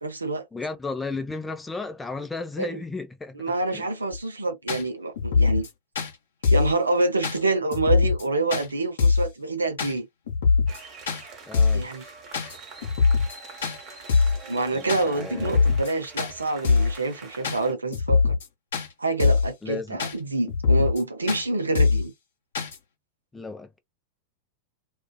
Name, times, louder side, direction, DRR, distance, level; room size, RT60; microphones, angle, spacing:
voice 1, 0.0-0.5 2.6-2.8 3.4-5.7 6.5-10.1 11.7-12.0 14.5-18.4 19.0-22.1, right 2 dB, 80° right, 0.6 m, -27 dB
voice 2, 0.5-3.9 11.5-11.9 14.7-15.6 19.6-20.0 23.3-23.8, left 3 dB, 10° left, 0.6 m, -34 dB
sound 1, 4.1-4.2 4.7-4.8 5.2-5.7 6.0-6.1 6.4-6.7 7.2-7.4 7.7-8.2 8.5-8.7 9.0-9.3 9.8-9.9 10.3-10.8 11.1-11.2 11.5-11.9 12.3-12.6 12.8-13.4 13.6-13.8 14.1-14.4 14.9-15.0 15.4-15.9 16.2-16.3 16.6-17.0 17.4-17.6 17.9-18.5 18.7-18.9 19.2-19.5 20.0-20.1 20.5-21.0 21.3-21.4 21.8-22.1 22.6-22.8, left 4 dB, 65° left, 0.8 m, -22 dB
sound 2, 10.7-17.7, right 4 dB, 35° right, 1.0 m, -44 dB
2.4 x 2.3 x 2.2 m
figure-of-eight pair, 90°, 0 cm